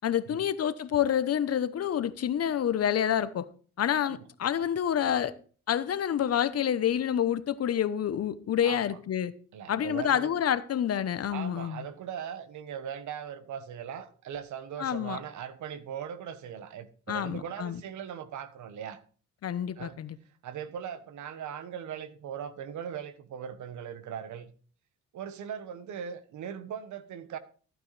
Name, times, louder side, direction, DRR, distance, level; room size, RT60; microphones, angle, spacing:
voice 1, 0.0-3.5 3.8-5.3 5.7-9.3 9.7-11.9 14.8-15.2 17.1-17.8 19.4-20.2, left 9 dB, 55° left, 0.9 m, -28 dB
voice 2, 8.6-9.0 9.5-10.3 11.3-19.0 19.8-20.0 20.4-24.5 25.1-27.4, right 8 dB, 75° right, 1.3 m, -39 dB
14.0 x 9.1 x 3.3 m
cardioid pair, 90°, 30 cm